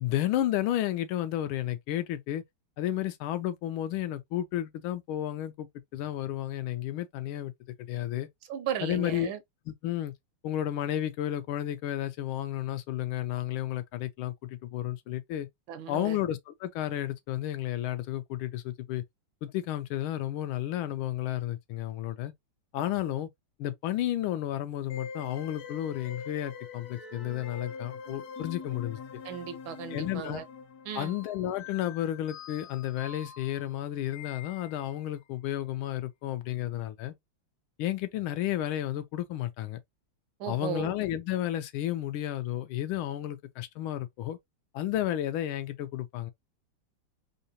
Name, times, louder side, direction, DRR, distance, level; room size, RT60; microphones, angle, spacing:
voice 1, 0.0-2.4 2.8-7.5 7.9-8.3 8.8-9.3 9.7-10.1 10.4-15.5 15.9-19.0 19.4-22.3 22.7-23.3 23.6-29.0 29.9-30.4 30.9-37.1 37.8-39.8 40.5-44.4 44.7-46.3, left 12 dB, 80° left, 1.4 m, -32 dB
voice 2, 8.5-9.4 15.7-16.2 29.2-30.4 30.9-31.1 40.4-40.9, right 9 dB, 75° right, 1.2 m, -36 dB
sound 1, 24.9-35.1, left 6 dB, 60° left, 1.1 m, -44 dB
3.7 x 2.7 x 2.7 m
omnidirectional pair, 2.3 m